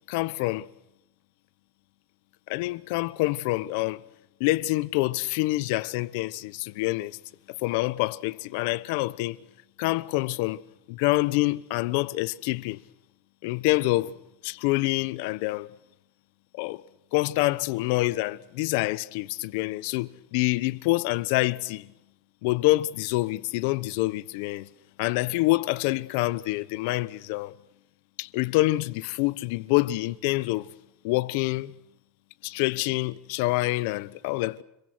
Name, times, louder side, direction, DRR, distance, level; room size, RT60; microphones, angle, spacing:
voice 1, 0.1-0.7 2.5-4.0 4.4-7.2 7.5-9.4 9.8-10.6 10.9-12.8 13.4-14.1 14.4-15.7 16.6-16.8 17.1-21.9 22.4-24.7 25.0-27.5 28.2-30.7 31.0-31.7 32.4-34.6, left 20 dB, 65° left, 1.0 m, -26 dB
30.0 x 23.5 x 6.3 m
supercardioid pair, 150°, 0 cm